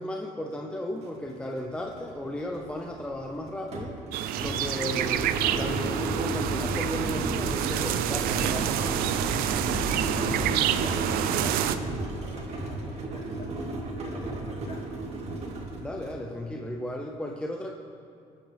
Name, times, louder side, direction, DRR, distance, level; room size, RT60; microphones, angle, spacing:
voice 1, 0.0-4.0 4.4-5.3 5.6-8.8 15.8-17.7, left 1 dB, 5° left, 2 dB, 0.7 m, -35 dB
sound 1, 1.0-1.1 1.4-16.2, right 2 dB, 45° right, 2.3 m, -33 dB
sound 2, 4.1-11.8, right 11 dB, 80° right, 0.6 m, -28 dB
voice 2, 9.4-13.7 14.0-15.0, left 2 dB, 45° left, -2 dB, 3.0 m, -45 dB
21.5 x 9.5 x 3.5 m, 2.4 s
cardioid pair, 130°, 15 cm